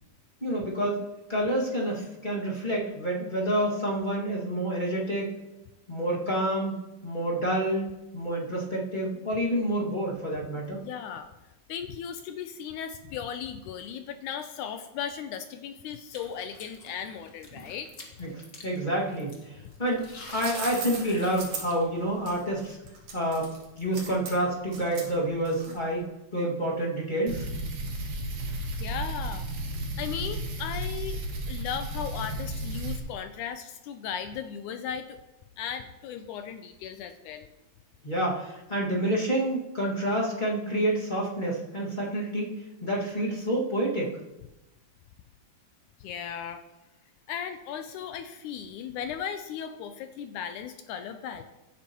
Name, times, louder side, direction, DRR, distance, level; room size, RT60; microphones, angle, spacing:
voice 1, 0.4-1.0 1.3-5.3 5.9-6.7 7.0-7.9 8.1-10.8 18.2-22.8 23.1-26.0 26.3-27.5 38.0-44.1, right 1 dB, 25° left, -5 dB, 1.1 m, -28 dB
voice 2, 10.7-11.3 11.7-17.9 28.8-31.2 31.5-35.2 35.6-37.5 46.0-46.6 47.3-51.4, left 8 dB, 85° left, 8 dB, 1.8 m, -36 dB
sound 1, 16.1-21.9, left 2 dB, 65° left, 0.7 m, -47 dB
sound 2, 20.0-26.0, right 5 dB, 55° right, 2.1 m, -39 dB
sound 3, 27.3-33.0, right 1 dB, 70° right, 3.4 m, -33 dB
15.5 x 8.4 x 3.0 m, 0.99 s
omnidirectional pair, 4.0 m